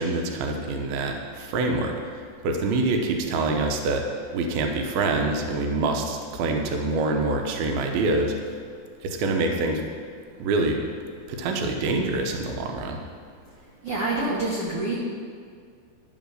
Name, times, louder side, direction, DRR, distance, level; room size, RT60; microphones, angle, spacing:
voice 1, 0.0-2.0 2.4-4.0 4.3-8.3 9.0-9.8 10.4-10.8 11.3-13.0, right 3 dB, 85° right, 3 dB, 2.6 m, -25 dB
voice 2, 13.8-15.0, right 2 dB, 65° right, -5 dB, 1.4 m, -26 dB
12.0 x 4.5 x 6.3 m, 2.1 s
omnidirectional pair, 4.2 m